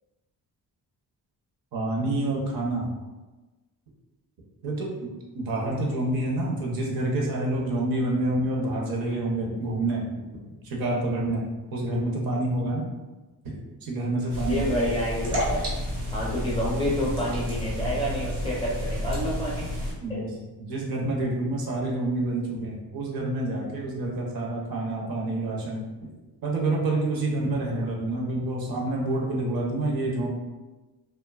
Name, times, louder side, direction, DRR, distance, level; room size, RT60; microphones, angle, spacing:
voice 1, 1.7-2.9 4.6-4.9 5.3-10.2 10.6-11.4 11.7-12.9 13.4-14.6 20.0-25.8 26.4-30.3, right 2 dB, 65° right, -2 dB, 0.7 m, -28 dB
sound 1, 14.3-19.9, equal, 85° right, 0.9 m, -30 dB
voice 2, 14.5-15.6 16.1-19.7 20.1-20.2, equal, 15° left, -6 dB, 0.5 m, -28 dB
2.7 x 2.2 x 2.2 m, 1.2 s
wide cardioid pair, 155°, 38 cm